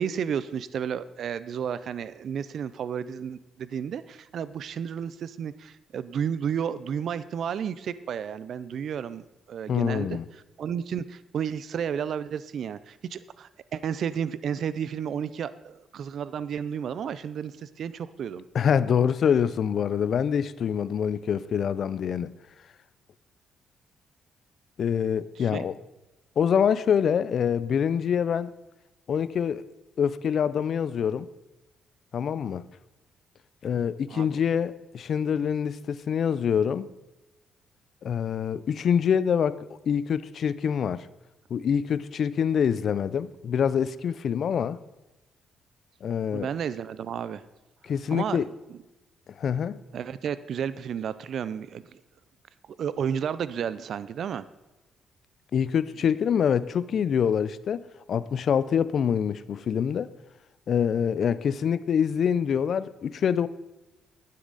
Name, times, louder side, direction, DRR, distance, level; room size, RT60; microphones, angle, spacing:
voice 1, 0.0-10.2 10.6-18.5 25.4-25.6 34.1-34.4 46.3-47.4 48.1-48.4 48.7-48.8 49.9-52.0 52.8-54.5, right 8 dB, 65° right, 0.5 m, -32 dB
voice 2, 9.7-10.2 18.5-22.3 24.8-25.8 26.4-28.5 29.1-29.6 30.0-31.3 32.1-32.6 33.6-36.9 38.0-39.6 39.9-41.1 41.5-44.8 46.0-46.5 47.8-48.5 49.4-49.8 55.5-57.8 58.1-60.1 60.7-63.5, left 7 dB, 60° left, 0.5 m, -25 dB
11.5 x 9.6 x 4.0 m
cardioid pair, 90°, 0 cm